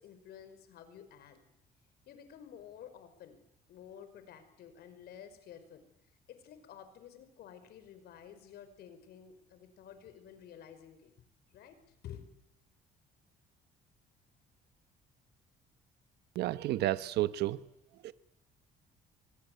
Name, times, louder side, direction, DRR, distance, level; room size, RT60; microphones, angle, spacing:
voice 1, 0.0-1.4 2.0-3.4 3.7-5.8 6.3-11.1 11.5-11.8 12.0-12.3, left 9 dB, 70° left, 10 dB, 5.3 m, -51 dB
voice 2, 16.3-17.6 18.0-18.1, right 15 dB, 75° right, 13 dB, 1.1 m, -31 dB
25.0 x 23.5 x 9.4 m, 0.79 s
cardioid pair, 110°, 17 cm